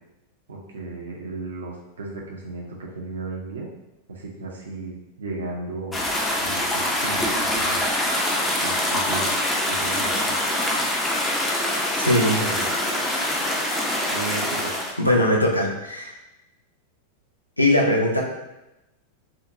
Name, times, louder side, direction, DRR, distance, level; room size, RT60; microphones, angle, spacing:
voice 1, 0.5-3.7 4.1-6.0 6.4-7.8 8.6-9.4 9.7-10.4 12.4-12.7 13.8-14.8, right 3 dB, 70° right, -2 dB, 0.5 m, -35 dB
sound 1, 5.9-14.9, left 1 dB, 5° left, 0.5 m, -24 dB
voice 2, 12.0-12.4 15.0-16.1 17.6-18.2, left 1 dB, 85° left, 0 dB, 0.4 m, -20 dB
2.6 x 2.1 x 2.6 m, 0.95 s
figure-of-eight pair, 90°, 0 cm